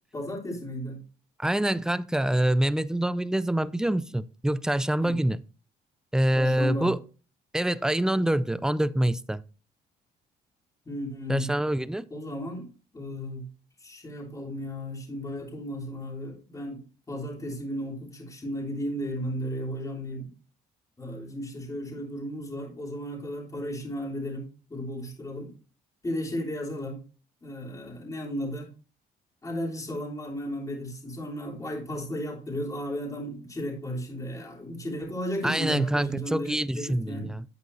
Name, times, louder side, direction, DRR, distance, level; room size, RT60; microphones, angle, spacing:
voice 1, 0.1-1.0 5.0-5.2 6.3-6.9 10.8-11.5 12.1-12.7 12.9-13.5 13.8-20.3 21.0-25.5 26.0-27.0 27.4-28.7 29.4-37.3, equal, 20° left, 3.3 m, -34 dB
voice 2, 1.4-5.4 6.1-7.0 7.5-9.4 11.3-12.1 35.4-37.4, right 1 dB, 5° right, 0.3 m, -25 dB
9.7 x 8.3 x 2.7 m
cardioid pair, 110°, 17 cm